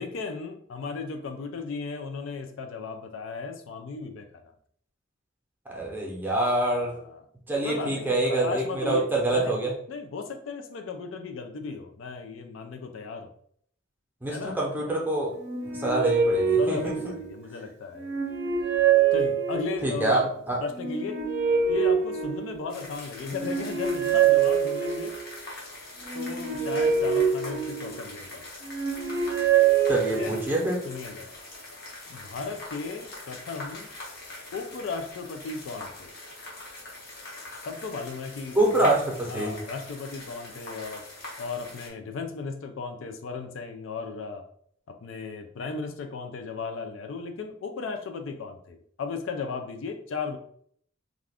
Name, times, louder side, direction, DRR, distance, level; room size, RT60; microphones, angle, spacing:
voice 1, 0.0-4.3 6.7-7.2 7.6-9.6 9.9-13.3 14.3-14.6 16.6-18.3 19.1-20.3 20.6-21.2 21.7-25.1 26.1-28.5 30.2-30.4 30.8-31.3 32.1-33.9 34.5-36.1 37.6-39.0 39.3-41.0 41.4-44.4 44.9-50.4, left 4 dB, 70° left, 5 dB, 0.4 m, -36 dB
voice 2, 5.7-6.9 7.5-9.7 14.2-15.3 15.7-17.0 19.8-20.6 29.9-30.8 38.5-39.6, right 2 dB, 10° right, -3 dB, 0.7 m, -26 dB
sound 1, 15.4-17.5 18.0-20.0 20.7-22.8 23.3-25.3 26.0-28.1 28.6-30.6, right 7 dB, 55° right, 0.6 m, -25 dB
sound 2, 22.7-41.9, left 2 dB, 50° left, 0.8 m, -43 dB
2.4 x 2.4 x 3.4 m, 0.63 s
head